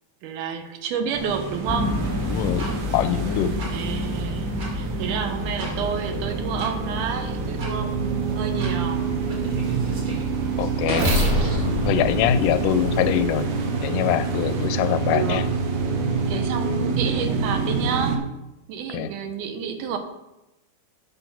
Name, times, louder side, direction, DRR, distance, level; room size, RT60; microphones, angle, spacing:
voice 1, 0.2-2.0 3.7-9.0 15.1-15.5 16.3-18.2 18.7-20.0, right 7 dB, 80° right, 6 dB, 2.4 m, -30 dB
sound 1, 1.1-18.2, right 4 dB, 65° right, 1.5 m, -27 dB
sound 2, 1.7-13.5, left 2 dB, 20° left, 0.4 m, -32 dB
voice 2, 2.3-2.7 2.9-3.5 10.6-11.1 11.9-13.5 13.8-15.5 18.9-19.1, left 11 dB, 85° left, 12 dB, 2.2 m, -23 dB
sound 3, 2.6-2.7 3.6-3.7 4.6-4.7 5.6-5.7 6.6-6.7 7.6-7.7 8.6-8.7 9.3-13.2, equal, 40° right, 2.8 m, -27 dB
8.4 x 5.7 x 5.9 m, 0.95 s
omnidirectional pair, 3.6 m